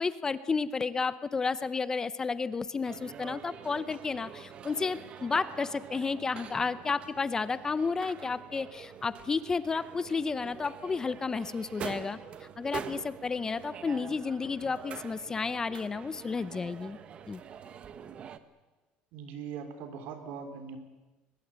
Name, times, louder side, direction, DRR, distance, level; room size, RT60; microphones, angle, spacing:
voice 1, 0.0-12.2 12.6-17.0 17.3-17.4, left 4 dB, 20° left, 15 dB, 0.7 m, -32 dB
sound 1, 2.8-18.4, right 7 dB, 35° right, 1.2 m, -45 dB
voice 2, 19.1-20.8, right 6 dB, 65° right, 8 dB, 3.7 m, -41 dB
22.0 x 21.0 x 8.8 m, 1.2 s
cardioid pair, 155°, 3 cm